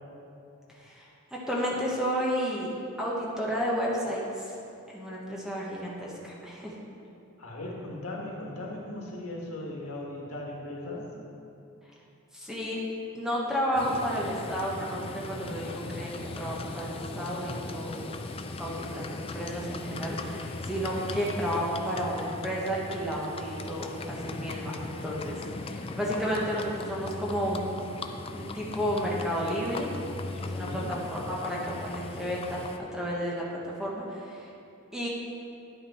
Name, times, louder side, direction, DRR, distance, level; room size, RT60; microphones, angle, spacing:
voice 1, 1.3-2.7 3.0-4.6 4.9-6.7 12.3-12.8 13.1-18.0 18.6-27.7 28.3-29.9 30.4-32.6 32.9-33.4 33.8-34.4 34.9-35.1, equal, 5° right, -5 dB, 1.1 m, -32 dB
voice 2, 7.4-11.1 30.6-30.9, left 1 dB, 85° left, -2 dB, 1.6 m, -38 dB
Livestock farm animals working animals, 13.8-32.8, left 2 dB, 25° left, 0.3 m, -38 dB
10.5 x 5.8 x 4.2 m, 2.7 s
head